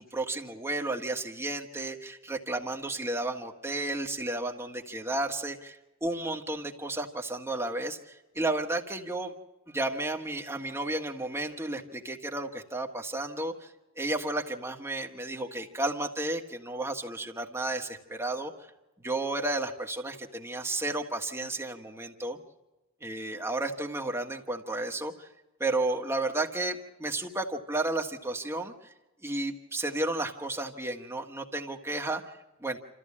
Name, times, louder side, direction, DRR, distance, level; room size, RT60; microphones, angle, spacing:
voice 1, 0.0-9.3 9.7-13.7 14.0-18.5 19.0-22.4 23.0-25.3 25.6-28.9 29.2-32.8, right 2 dB, 15° right, 2 dB, 1.6 m, -32 dB
27.0 x 14.5 x 8.6 m, 1.0 s
head